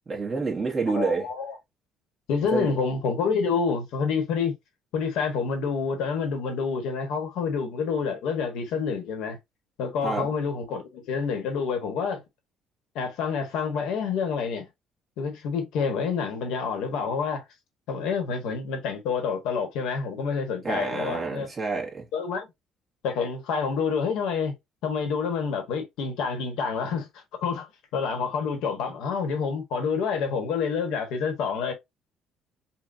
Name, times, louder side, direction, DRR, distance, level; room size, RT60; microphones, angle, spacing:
voice 1, 0.1-1.3 2.5-2.8 10.0-10.3 20.6-22.1, right 4 dB, 25° right, 1.3 m, -28 dB
voice 2, 0.9-1.6 2.3-4.5 4.9-9.4 9.8-12.2 12.9-14.7 15.2-17.4 17.9-21.5 22.1-22.5 23.0-24.5 24.8-27.1 27.4-27.7 27.9-31.7, left 5 dB, 80° left, 1.3 m, -28 dB
5.7 x 2.3 x 2.6 m
cardioid pair, 130°, 0 cm